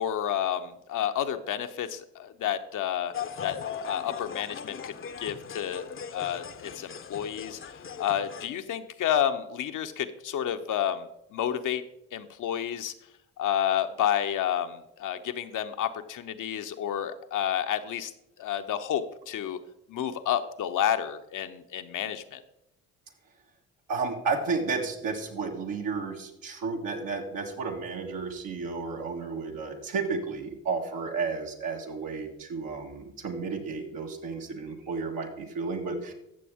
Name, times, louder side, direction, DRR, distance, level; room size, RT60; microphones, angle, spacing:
voice 1, 0.0-3.1 3.4-3.6 3.9-7.6 8.0-11.8 12.1-12.9 13.4-18.1 18.4-19.6 19.9-22.4, left 10 dB, 60° left, 8 dB, 0.9 m, -30 dB
sound 1, 3.1-8.5, left 7 dB, 35° left, 0.8 m, -39 dB
voice 2, 23.9-36.1, right 4 dB, 75° right, 1 dB, 1.9 m, -32 dB
15.0 x 6.8 x 3.6 m, 0.84 s
hypercardioid pair, 50°, 34 cm